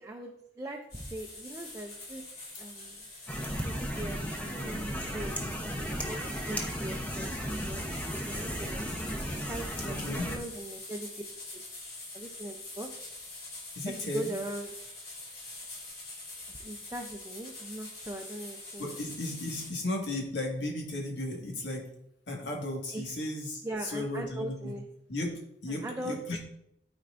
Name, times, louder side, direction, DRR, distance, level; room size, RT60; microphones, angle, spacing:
voice 1, 0.0-2.2 2.6-3.0 3.6-4.8 5.1-5.3 6.1-7.8 8.1-8.8 9.4-11.1 12.1-12.9 13.9-14.7 16.5-18.9 22.9-23.1 23.6-24.8 25.7-26.4, right 1 dB, 15° right, 2 dB, 0.5 m, -40 dB
sound 1, 0.9-19.7, left 2 dB, 60° left, 2.4 m, -45 dB
sound 2, 3.3-10.4, equal, 10° left, 0.8 m, -35 dB
voice 2, 9.9-10.3 13.8-14.3 18.8-21.9 22.3-24.7 25.1-25.3 25.6-26.4, left 1 dB, 80° left, 0 dB, 1.8 m, -35 dB
12.5 x 4.4 x 2.5 m, 0.77 s
head